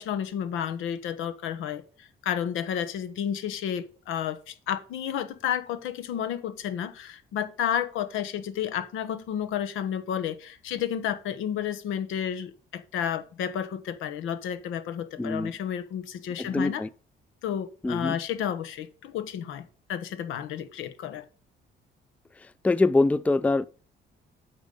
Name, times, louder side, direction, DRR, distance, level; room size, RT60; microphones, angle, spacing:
voice 1, 0.0-16.8 17.4-21.2, left 9 dB, 90° left, 1.0 m, -31 dB
voice 2, 15.2-15.5 16.4-16.9 17.8-18.2 22.4-23.7, left 2 dB, 5° left, 0.4 m, -24 dB
8.8 x 5.4 x 5.3 m
cardioid pair, 90°, 20 cm